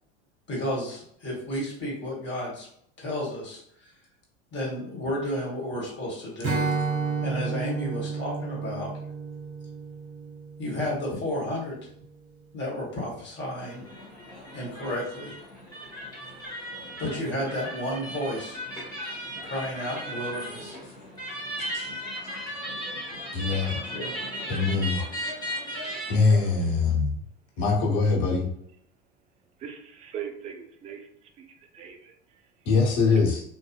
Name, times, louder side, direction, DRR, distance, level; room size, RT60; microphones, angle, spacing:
voice 1, 0.5-2.7 3.0-3.6 4.5-6.7 7.2-8.9 10.6-11.8 12.5-13.8 14.5-15.3 17.0-18.6 19.4-20.8 23.5-24.1, left 1 dB, 35° left, -3 dB, 1.3 m, -32 dB
Strum, 6.4-11.9, right 4 dB, 45° right, 0.8 m, -32 dB
sound 1, 13.6-26.9, equal, 10° left, 1.1 m, -37 dB
voice 2, 23.3-23.7 24.5-25.0 26.1-27.1 27.6-28.5 32.7-33.4, left 4 dB, 55° left, -1 dB, 0.9 m, -23 dB
voice 3, 29.6-32.7 33.1-33.3, right 8 dB, 20° right, 4 dB, 0.3 m, -41 dB
2.6 x 2.1 x 2.4 m, 0.66 s
hypercardioid pair, 75°, 33 cm